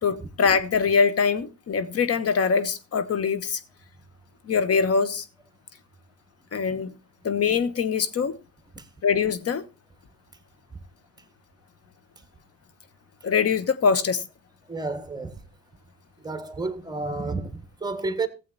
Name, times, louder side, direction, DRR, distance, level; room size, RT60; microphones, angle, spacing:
voice 1, 0.0-3.6 4.5-5.2 6.5-6.9 7.2-8.4 9.0-9.6 13.2-14.2, left 5 dB, 55° left, 1.2 m, -23 dB
voice 2, 14.7-15.4 16.2-18.3, right 3 dB, 15° right, 1.6 m, -31 dB
15.5 x 7.7 x 4.1 m
cardioid pair, 90°, 30 cm